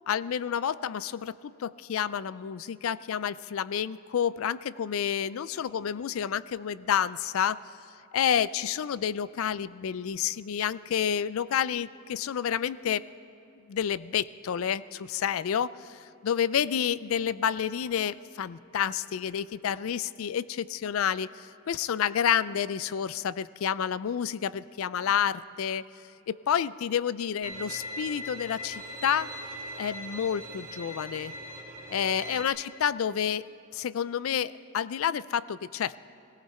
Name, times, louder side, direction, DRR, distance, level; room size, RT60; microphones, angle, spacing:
voice 1, 0.1-7.6 8.1-13.0 13.7-25.8 26.3-29.3 29.8-31.3 31.9-33.4 33.7-36.0, left 8 dB, 85° left, 18 dB, 0.4 m, -29 dB
Bowed string instrument, 27.4-32.5, equal, 40° right, 3.2 m, -40 dB
18.5 x 17.0 x 4.4 m, 2.8 s
head